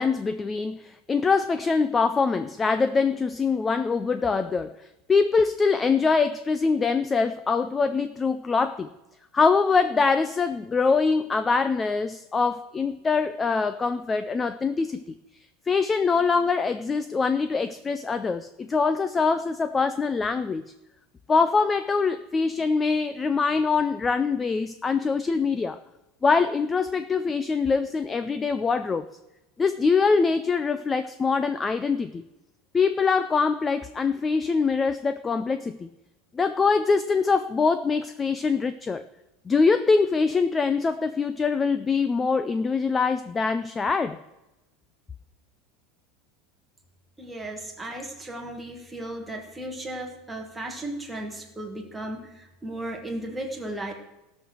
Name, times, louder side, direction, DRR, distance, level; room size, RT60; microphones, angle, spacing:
voice 1, 0.0-4.7 5.1-8.9 9.3-15.2 15.7-20.7 21.3-25.8 26.2-29.1 29.6-32.2 32.7-35.9 36.3-39.0 39.5-44.2, left 4 dB, 10° left, 12 dB, 0.3 m, -24 dB
voice 2, 47.2-53.9, right 1 dB, 5° right, 1 dB, 1.4 m, -35 dB
15.5 x 6.3 x 6.2 m, 0.97 s
supercardioid pair, 180°, 0 cm